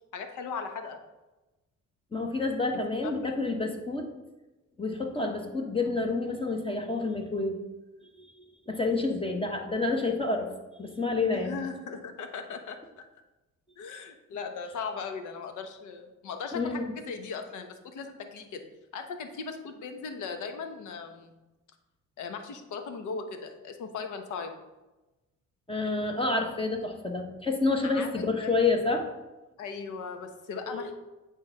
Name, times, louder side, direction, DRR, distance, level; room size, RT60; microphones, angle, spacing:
voice 1, 0.1-1.0 3.0-3.4 11.4-13.0 13.8-18.6 18.9-21.3 22.2-24.6 27.8-28.6 29.6-30.9, left 5 dB, 80° left, 6 dB, 1.0 m, -38 dB
voice 2, 2.1-4.1 4.8-7.6 8.0-8.3 8.7-10.5 10.8-11.5 16.5-16.9 25.7-29.1 30.6-30.9, left 3 dB, 20° left, 3 dB, 1.1 m, -29 dB
8.7 x 3.4 x 5.6 m, 1.1 s
cardioid pair, 90°, 30 cm